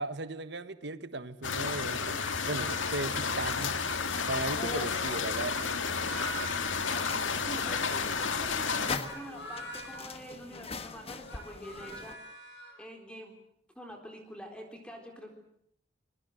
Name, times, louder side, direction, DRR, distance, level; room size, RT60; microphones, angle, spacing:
voice 1, 0.0-2.2 2.5-3.8 4.3-6.1, right 2 dB, 65° right, 1.4 m, -37 dB
sound 1, 1.4-9.0, left 5 dB, 85° left, 1.9 m, -32 dB
sound 2, 1.9-4.4 5.2-7.3 8.9-10.0 11.1-12.8, right 1 dB, 65° left, 6.0 m, -44 dB
sound 3, 3.4-12.1, left 4 dB, 30° left, 1.4 m, -42 dB
voice 2, 7.3-12.2 12.8-13.4 13.8-15.3, equal, 5° left, 4.0 m, -46 dB
26.5 x 22.0 x 7.8 m
head